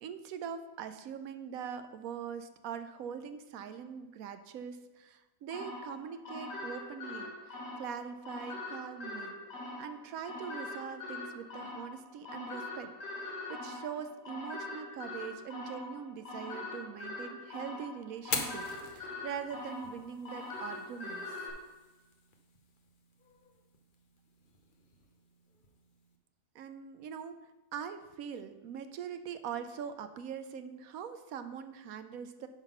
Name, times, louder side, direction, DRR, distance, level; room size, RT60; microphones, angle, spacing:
voice 1, 0.0-9.4 9.8-21.4 26.5-32.5, right 7 dB, 70° right, 10 dB, 0.9 m, -42 dB
sound 1, 5.5-21.5, left 2 dB, 75° left, 2.2 m, -43 dB
Fire, 18.2-26.2, left 4 dB, 40° left, 0.8 m, -44 dB
10.5 x 3.8 x 5.6 m, 1.1 s
omnidirectional pair, 1.8 m